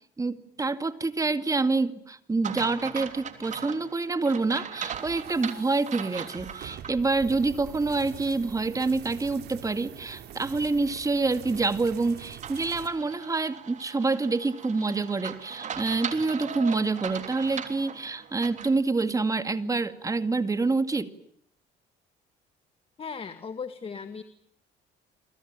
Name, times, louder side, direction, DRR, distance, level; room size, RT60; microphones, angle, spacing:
voice 1, 0.2-21.1, right 3 dB, 20° right, 11 dB, 2.2 m, -27 dB
sound 1, 2.4-6.9 7.4-7.5 12.4-18.8, right 7 dB, 45° right, 3.4 m, -39 dB
sound 2, 4.9-12.9, right 10 dB, 75° right, 3.7 m, -44 dB
voice 2, 23.0-24.2, left 5 dB, 35° left, 10 dB, 1.8 m, -37 dB
29.0 x 23.0 x 9.0 m, 0.67 s
cardioid pair, 110°, 17 cm